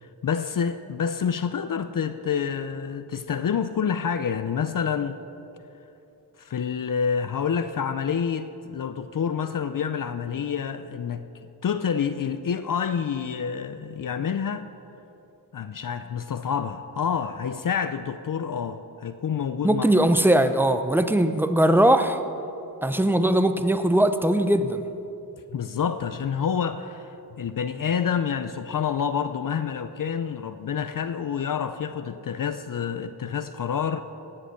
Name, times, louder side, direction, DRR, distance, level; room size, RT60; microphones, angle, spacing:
voice 1, 0.0-5.2 6.4-14.6 15.5-19.9 25.5-34.0, left 7 dB, 55° left, 10 dB, 0.6 m, -28 dB
voice 2, 19.6-22.2 22.8-24.8, right 1 dB, 5° right, 9 dB, 0.6 m, -20 dB
17.5 x 7.7 x 5.8 m, 2.8 s
wide cardioid pair, 100°, 39 cm